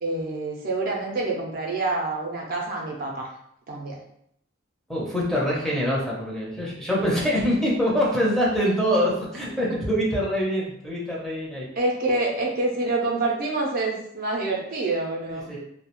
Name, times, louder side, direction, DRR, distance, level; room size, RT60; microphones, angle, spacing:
voice 1, 0.0-3.3 3.7-4.0 11.8-15.5, right 2 dB, 50° right, -1 dB, 0.4 m, -27 dB
voice 2, 4.9-11.7 15.3-15.6, equal, ahead, -5 dB, 0.5 m, -24 dB
2.3 x 2.0 x 2.8 m, 0.72 s
head